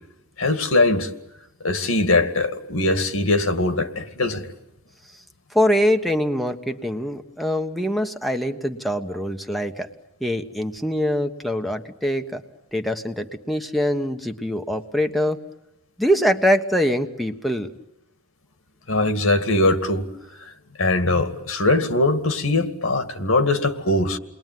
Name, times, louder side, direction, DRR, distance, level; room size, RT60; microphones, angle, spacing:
voice 1, 0.4-1.1 1.6-4.5 18.9-20.0 20.4-20.5 20.8-24.2, left 2 dB, 80° left, 2.3 m, -21 dB
voice 2, 5.5-9.9 10.2-12.4 12.7-15.4 16.0-17.7, equal, ahead, 1.3 m, -23 dB
29.5 x 21.5 x 9.4 m
head